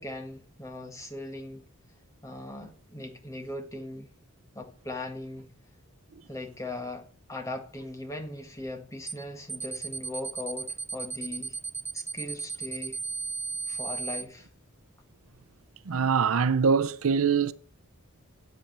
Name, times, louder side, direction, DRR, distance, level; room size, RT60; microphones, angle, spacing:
voice 1, 0.0-1.7 2.2-4.1 4.5-5.5 6.3-11.6 11.9-13.0 13.7-14.5, left 2 dB, 15° left, 1.6 m, -39 dB
sound 1, 9.1-9.2 9.5-14.2, right 5 dB, 10° right, 0.5 m, -35 dB
voice 2, 15.9-17.5, right 6 dB, 70° right, 0.5 m, -23 dB
8.6 x 8.3 x 7.3 m
head